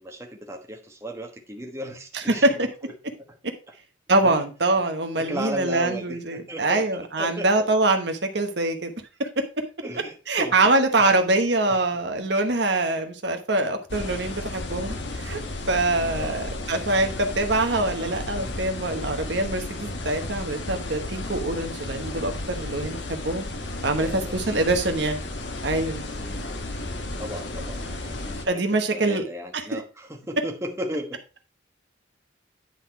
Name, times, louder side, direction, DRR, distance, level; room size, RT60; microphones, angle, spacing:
voice 1, 0.0-2.7 4.2-4.5 4.8-4.9 5.2-7.7 9.8-10.5 11.0-11.1 11.7-11.8 16.1-16.4 23.9-24.6 26.1-26.5 27.2-31.2, equal, 15° right, 2 dB, 1.1 m, -35 dB
voice 2, 2.1-2.7 4.1-8.9 9.2-9.3 10.3-15.4 15.7-23.5 23.8-25.2 25.6-26.0 28.5-29.2 29.7-29.8, right 2 dB, 65° right, 5 dB, 1.1 m, -24 dB
sound 1, 13.9-28.4, left 2 dB, 70° left, 1.2 m, -33 dB
9.9 x 4.1 x 4.5 m, 0.34 s
head